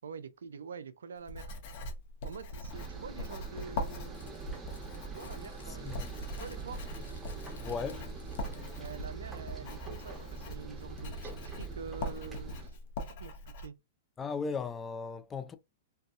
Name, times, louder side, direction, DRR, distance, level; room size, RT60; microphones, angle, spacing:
voice 1, 0.0-1.5 2.2-4.2 5.1-6.0 6.3-6.9 8.8-12.8 13.2-13.7, right 6 dB, 80° right, 0.3 m, -46 dB
Writing, 1.2-13.7, left 1 dB, 55° left, 0.7 m, -42 dB
sound 1, 2.7-12.7, right 4 dB, 5° right, 1.2 m, -44 dB
Crumpling crinkling, 3.8-9.7, left 4 dB, 85° left, 0.4 m, -59 dB
voice 2, 5.7-6.1 7.6-8.1 14.2-15.6, left 5 dB, 20° left, 0.3 m, -37 dB
2.6 x 2.3 x 2.3 m
hypercardioid pair, 115°, 0 cm